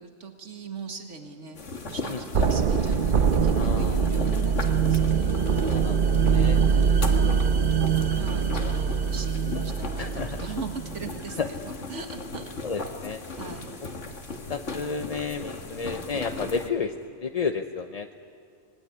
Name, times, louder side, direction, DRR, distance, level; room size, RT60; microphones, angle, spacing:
voice 1, 0.0-5.5 6.6-7.7 8.1-12.5 13.4-13.7, right 5 dB, 85° right, 5 dB, 2.0 m, -40 dB
sound 1, 1.5-16.7, left 3 dB, 85° left, 2.1 m, -37 dB
sound 2, 2.3-11.2, right 6 dB, 50° right, 0.9 m, -23 dB
voice 2, 3.5-4.1 5.7-6.0 6.3-6.6 8.4-8.6 10.0-10.4 11.4-11.5 12.6-13.2 14.5-18.2, left 5 dB, 40° left, 6 dB, 0.7 m, -31 dB
26.0 x 20.5 x 9.7 m, 2.4 s
omnidirectional pair, 1.2 m